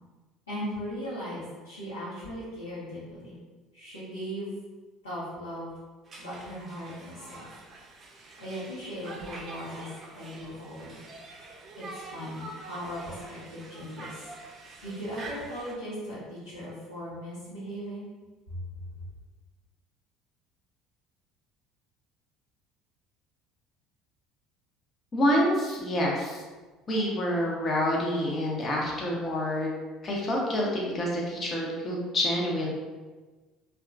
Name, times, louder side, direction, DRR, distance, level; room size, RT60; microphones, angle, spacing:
voice 1, 0.5-3.4 3.7-4.5 5.0-5.7 6.2-7.5 8.4-11.0 11.8-14.3 14.8-18.1 18.5-18.6, equal, 85° left, -13 dB, 0.9 m, -38 dB
Conversation, 6.1-15.7, right 2 dB, 40° right, 0.5 m, -45 dB
voice 2, 25.1-26.4 26.9-29.7 30.0-32.7, equal, 35° left, -3 dB, 0.8 m, -27 dB
2.8 x 2.3 x 2.4 m, 1.3 s
figure-of-eight pair, 60°, 0 cm